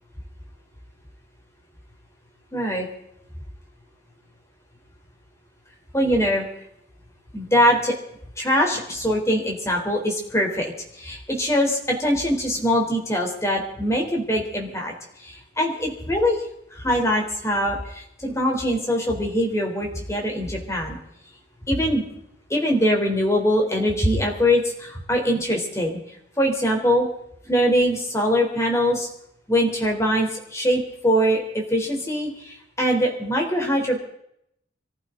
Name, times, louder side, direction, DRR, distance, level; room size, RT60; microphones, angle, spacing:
voice 1, 2.5-2.9 5.9-6.5 7.3-7.9 8.4-14.9 15.2-16.4 16.7-21.0 21.7-22.0 22.5-26.0 26.4-27.1 27.5-29.1 29.5-34.0, equal, 15° left, 1 dB, 3.7 m, -22 dB
25.0 x 14.5 x 3.9 m, 0.74 s
head